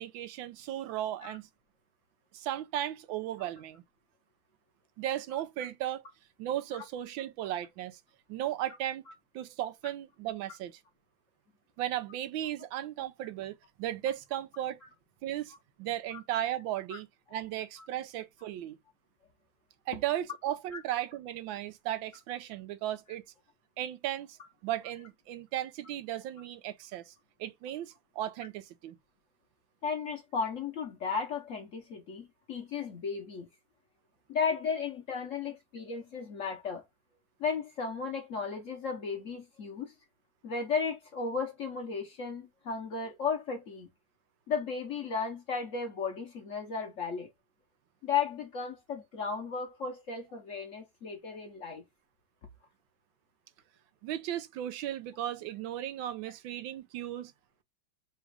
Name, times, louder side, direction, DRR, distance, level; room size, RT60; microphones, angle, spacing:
voice 1, 0.0-1.5 2.3-3.8 5.0-6.0 6.4-8.0 8.3-9.0 9.3-10.8 11.8-14.8 15.2-18.8 19.9-23.2 23.8-24.4 24.6-27.1 27.4-29.0 54.0-57.3, right 12 dB, 85° right, 1.4 m, -36 dB
voice 2, 29.8-33.5 34.3-36.8 37.4-39.9 40.4-43.9 44.5-47.3 48.0-51.8, left 5 dB, 55° left, 1.0 m, -35 dB
4.1 x 2.4 x 4.6 m
omnidirectional pair, 2.1 m